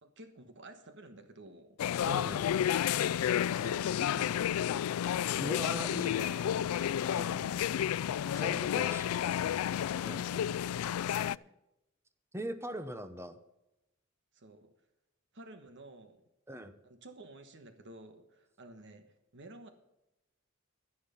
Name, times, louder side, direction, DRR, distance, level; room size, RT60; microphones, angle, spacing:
voice 1, 0.0-1.8 3.2-4.9 8.3-11.5 14.3-14.7 15.3-16.2 16.8-19.7, right 2 dB, 55° right, 7 dB, 1.3 m, -52 dB
sound 1, 1.8-11.4, left 10 dB, 90° left, 0.3 m, -31 dB
voice 2, 2.1-2.5 5.4-6.5 7.1-7.8 8.4-9.1 10.0-10.3 12.3-13.4 16.5-16.8, right 1 dB, 10° right, 9 dB, 0.9 m, -41 dB
11.5 x 10.5 x 5.6 m, 0.90 s
head